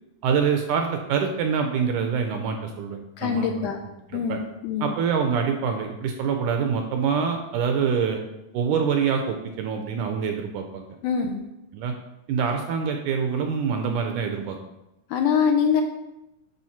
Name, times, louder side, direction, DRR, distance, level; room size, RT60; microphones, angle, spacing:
voice 1, 0.2-3.7 4.1-4.4 4.8-8.2 8.5-10.8 11.7-11.9 12.3-14.6, right 6 dB, 75° right, 4 dB, 1.9 m, -25 dB
voice 2, 3.2-3.8 4.1-4.9 11.0-11.4 15.1-15.8, left 7 dB, 80° left, 3 dB, 1.9 m, -24 dB
9.0 x 3.5 x 5.7 m, 0.91 s
omnidirectional pair, 4.1 m